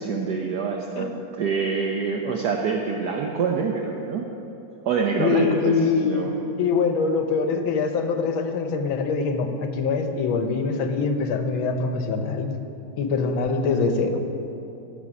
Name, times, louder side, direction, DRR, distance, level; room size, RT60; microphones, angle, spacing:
voice 1, 0.0-4.3 4.8-6.5, right 5 dB, 65° right, 2 dB, 1.1 m, -26 dB
voice 2, 5.2-6.3 6.6-12.6 13.0-14.2, left 4 dB, 85° left, 6 dB, 1.7 m, -24 dB
16.5 x 6.3 x 5.9 m, 2.8 s
omnidirectional pair, 2.2 m